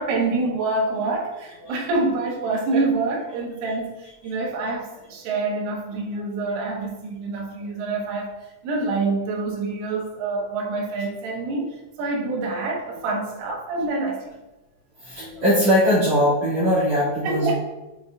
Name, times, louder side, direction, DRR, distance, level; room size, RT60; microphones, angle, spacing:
voice 1, 0.0-8.4 8.6-14.3 17.2-17.5, right 3 dB, 85° right, -1 dB, 3.8 m, -26 dB
voice 2, 15.0-17.5, equal, 45° right, -9 dB, 3.0 m, -20 dB
7.7 x 7.3 x 2.4 m, 1.0 s
omnidirectional pair, 5.5 m